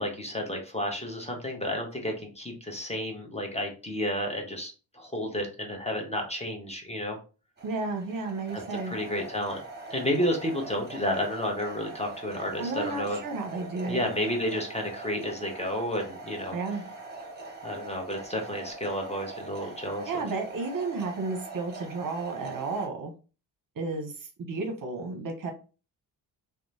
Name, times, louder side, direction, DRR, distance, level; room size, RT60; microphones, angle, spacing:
voice 1, 0.0-7.2 8.8-9.6 9.9-13.2 13.9-16.6 17.6-20.1, equal, 15° left, 1 dB, 0.9 m, -31 dB
sound 1, 7.6-22.9, right 2 dB, 20° right, 1.1 m, -43 dB
voice 2, 7.6-8.9 12.6-14.1 16.5-16.8 20.1-23.1 23.8-25.5, right 3 dB, 45° right, 3 dB, 0.8 m, -32 dB
2.9 x 2.2 x 2.6 m, 0.34 s
supercardioid pair, 50°, 47 cm